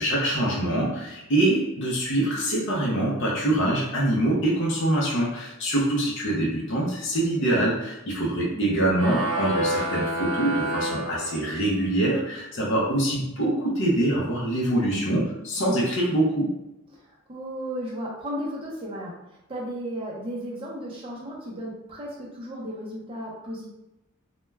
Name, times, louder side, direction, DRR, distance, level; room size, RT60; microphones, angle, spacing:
voice 1, 0.0-16.5, right 1 dB, 55° left, -4 dB, 0.6 m, -24 dB
voice 2, 8.5-8.9 16.9-23.7, equal, 25° right, -4 dB, 0.6 m, -35 dB
sound 1, 8.9-11.8, right 1 dB, 75° right, 0.8 m, -28 dB
2.2 x 2.2 x 3.1 m, 0.92 s
head